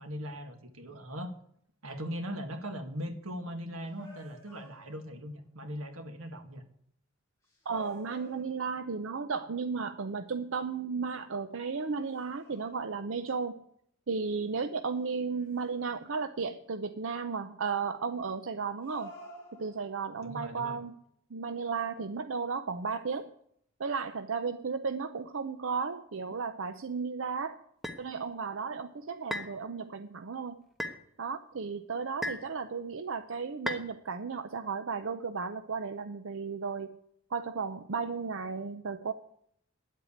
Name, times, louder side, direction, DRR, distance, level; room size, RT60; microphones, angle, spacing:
voice 1, 0.0-1.3 1.8-6.6 20.2-20.8, equal, 90° right, 7 dB, 1.8 m, -39 dB
sound 1, 3.9-5.3 7.4-8.9 11.9-13.2 15.3-16.4 18.8-20.2, right 1 dB, 15° left, 4.6 m, -53 dB
voice 2, 7.7-13.6 14.1-19.1 19.5-20.9 21.3-23.3 23.8-27.6 28.0-30.6 31.2-37.0 37.3-39.1, right 5 dB, 65° right, 9 dB, 0.6 m, -34 dB
sound 2, 27.8-28.0 29.3-29.6 30.8-31.0 32.2-32.5 33.7-33.9, left 1 dB, ahead, 1.2 m, -35 dB
10.5 x 8.2 x 8.6 m, 0.69 s
head